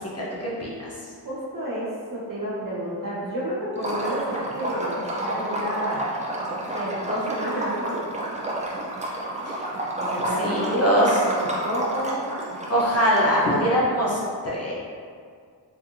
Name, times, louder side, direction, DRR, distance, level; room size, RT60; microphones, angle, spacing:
voice 1, 1.2-6.0 6.7-8.0 10.0-12.2, right 1 dB, 50° right, -7 dB, 1.2 m, -30 dB
Liquid, 3.8-13.7, right 1 dB, 15° right, 0.6 m, -30 dB
voice 2, 10.4-11.1 12.7-14.7, equal, 35° left, -6 dB, 0.8 m, -22 dB
3.7 x 2.6 x 2.7 m, 2.1 s
cardioid pair, 70°, 43 cm